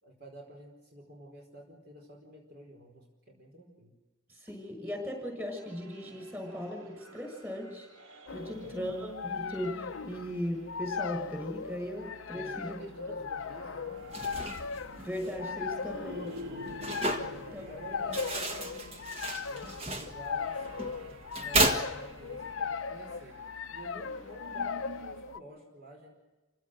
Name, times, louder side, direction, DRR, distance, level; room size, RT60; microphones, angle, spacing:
voice 1, 0.0-4.0 8.4-8.9 12.3-14.0 17.1-18.9 19.5-23.4 23.7-26.1, right 1 dB, 50° right, 0 dB, 4.6 m, -50 dB
voice 2, 4.3-7.9 8.3-12.8 15.0-16.3 17.5-17.6, equal, 10° right, 3 dB, 6.5 m, -38 dB
sound 1, 5.5-25.3, equal, 80° right, 2.0 m, -50 dB
sound 2, 8.3-25.4, left 5 dB, 80° left, 0.7 m, -38 dB
sound 3, 14.0-22.5, right 2 dB, 30° right, 1.7 m, -34 dB
28.5 x 17.0 x 6.5 m, 1.1 s
head